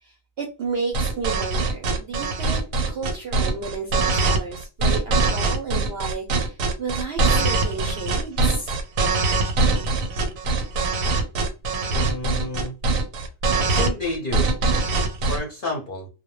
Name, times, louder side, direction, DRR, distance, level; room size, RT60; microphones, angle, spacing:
voice 1, 0.0-8.8, right 4 dB, 65° right, 1 dB, 0.6 m, -32 dB
sound 1, 0.9-15.4, right 3 dB, 85° right, 1.0 m, -22 dB
voice 2, 11.9-12.7 13.5-14.5 15.3-16.1, left 2 dB, 50° left, -1 dB, 0.7 m, -30 dB
2.1 x 2.0 x 2.9 m, 0.31 s
omnidirectional pair, 1.4 m